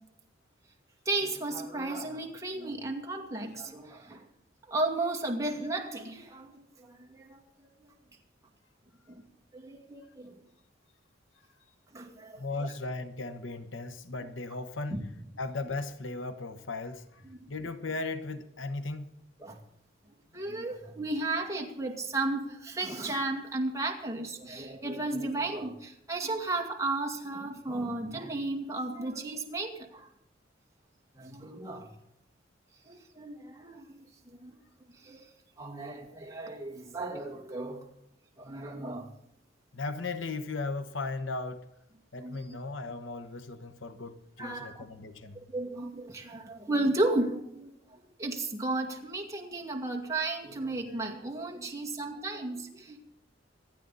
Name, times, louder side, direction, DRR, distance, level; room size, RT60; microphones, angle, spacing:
voice 1, 1.1-4.2 4.7-7.4 9.1-9.3 9.5-10.4 11.9-12.7 14.9-15.0 17.3-17.5 19.4-19.6 20.3-30.1 31.2-31.9 32.8-34.6 34.9-35.3 35.6-37.9 38.4-39.1 42.2-42.4 44.4-44.8 45.3-53.0, right 2 dB, 15° right, 2.1 m, -34 dB
voice 2, 12.4-15.0 15.4-17.2 17.5-19.1 39.7-41.6 42.1-45.4, left 3 dB, 85° left, 1.2 m, -36 dB
26.5 x 9.2 x 4.1 m
head